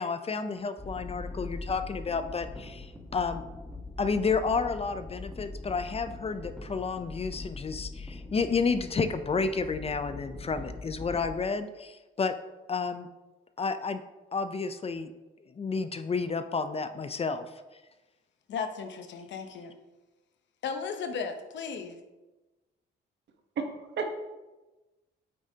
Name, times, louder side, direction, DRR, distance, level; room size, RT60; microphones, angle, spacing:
voice 1, 0.0-3.4 4.0-12.4 12.7-13.1 13.6-14.0 14.3-15.1 15.5-17.5, left 4 dB, 30° left, 10 dB, 0.5 m, -31 dB
sound 1, 0.8-11.4, left 2 dB, 5° left, 1.1 m, -42 dB
voice 2, 18.5-19.8 20.6-22.0, left 5 dB, 65° left, 7 dB, 0.9 m, -35 dB
voice 3, 23.6-24.2, right 4 dB, 65° right, 4 dB, 1.1 m, -32 dB
8.7 x 6.4 x 2.8 m, 1.1 s
cardioid pair, 90°, 20 cm